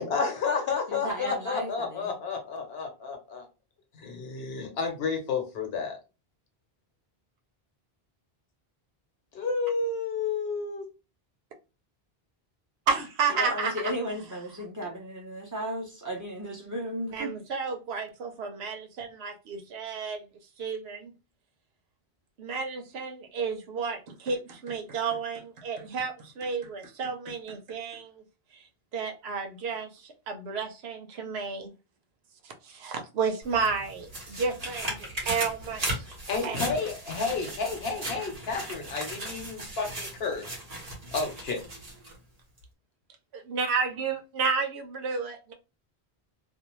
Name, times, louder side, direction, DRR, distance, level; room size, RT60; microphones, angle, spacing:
voice 1, 0.0-3.4 3.9-6.0 9.3-10.9 36.3-40.4 41.1-41.6, left 4 dB, 75° left, 1.0 m, -31 dB
voice 2, 0.9-2.1 13.3-17.4, equal, 20° right, 0.7 m, -35 dB
voice 3, 12.9-13.7 17.1-20.2 20.6-21.1 22.4-28.2 28.9-31.7 32.4-36.1 36.4-36.6 43.3-45.5, right 5 dB, 85° right, 0.9 m, -31 dB
sound 1, 33.4-42.2 42.6-42.7, right 1 dB, 40° right, 1.0 m, -37 dB
2.6 x 2.0 x 2.9 m
omnidirectional pair, 1.0 m